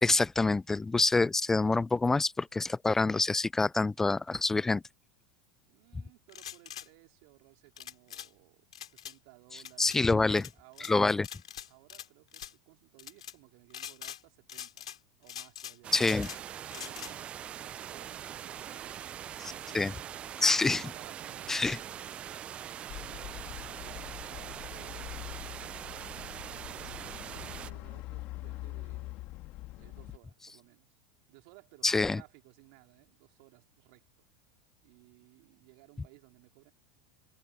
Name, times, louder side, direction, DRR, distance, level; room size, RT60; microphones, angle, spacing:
voice 1, 0.0-4.8 9.8-10.4 10.9-11.3 15.9-16.3 19.7-19.9 20.4-20.8 21.5-21.8 31.8-32.2, left 3 dB, 10° left, 0.3 m, -26 dB
voice 2, 5.7-11.0 11.7-14.9 15.2-16.3 16.7-29.1 29.7-31.0 31.3-34.3 34.8-36.7, right 35 dB, 60° right, 4.5 m, -59 dB
sound 1, 6.3-6.9 7.8-8.3 8.7-9.1 9.6-10.0 10.4-10.9 11.2-12.1 12.3-12.5 13.0-13.3 13.7-14.2 14.5-15.0 15.3-16.4 16.7-17.1, left 10 dB, 80° left, 2.8 m, -43 dB
sound 2, 15.8-27.7, right 10 dB, 35° right, 0.6 m, -42 dB
sound 3, 22.9-30.2, left 19 dB, 50° left, 1.8 m, -44 dB
hypercardioid pair, 85°, 3 cm